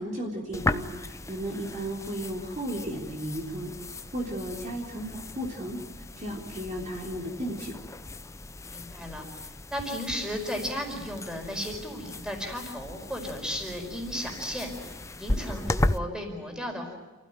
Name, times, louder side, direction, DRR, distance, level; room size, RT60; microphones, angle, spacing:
voice 1, 0.0-3.7 4.1-5.8 6.2-7.8, right 1 dB, 35° right, -1 dB, 3.7 m, -34 dB
sound 1, 0.5-16.0, left 1 dB, 15° left, 0.7 m, -36 dB
voice 2, 8.7-17.0, equal, 5° right, 2 dB, 5.0 m, -35 dB
28.5 x 16.0 x 9.1 m, 1.2 s
head